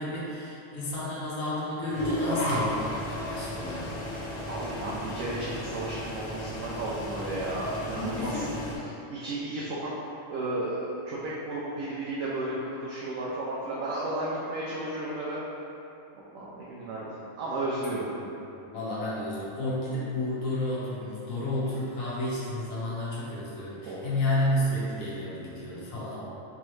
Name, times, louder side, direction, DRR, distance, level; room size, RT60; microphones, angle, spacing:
voice 1, 0.0-4.0 8.0-8.6 16.8-16.9 18.2-18.3 18.7-26.3, left 1 dB, 75° left, -8 dB, 1.3 m, -31 dB
sound 1, 1.9-8.8, left 1 dB, 55° left, 0.5 m, -34 dB
voice 2, 4.5-8.6 8.9-9.9 10.3-15.4 16.1-18.1 23.8-24.1 26.3-26.4, right 2 dB, 80° right, -7 dB, 1.0 m, -33 dB
3.6 x 3.0 x 3.1 m, 2.9 s
omnidirectional pair, 1.4 m